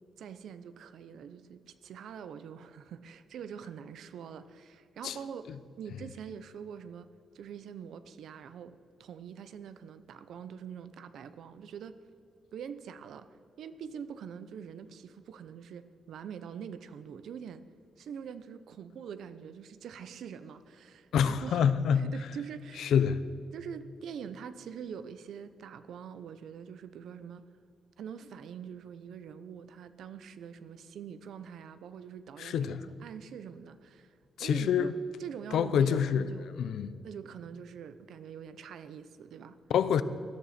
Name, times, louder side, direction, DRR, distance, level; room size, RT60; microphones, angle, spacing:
voice 1, 0.2-7.1 7.3-12.0 12.5-13.3 13.6-17.6 18.0-22.9 23.5-27.4 28.0-32.7 33.0-36.5 37.0-39.6, right 7 dB, 80° right, 0.8 m, -44 dB
voice 2, 21.1-22.1 22.8-23.2 32.4-32.9 34.4-34.9 35.5-36.3 36.6-36.9 39.7-40.0, left 8 dB, 80° left, 0.6 m, -26 dB
20.0 x 13.0 x 4.3 m
wide cardioid pair, 140°, 0 cm